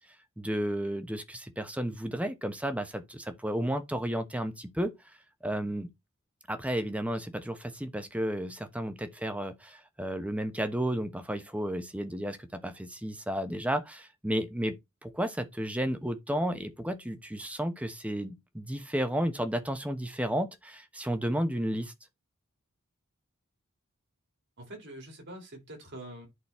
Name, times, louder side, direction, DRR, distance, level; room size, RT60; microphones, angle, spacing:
voice 1, 0.4-4.9 5.4-5.9 6.5-21.9, equal, 5° right, 1.0 m, -32 dB
voice 2, 24.6-26.3, right 1 dB, 55° right, 3.6 m, -45 dB
11.0 x 4.1 x 4.3 m
head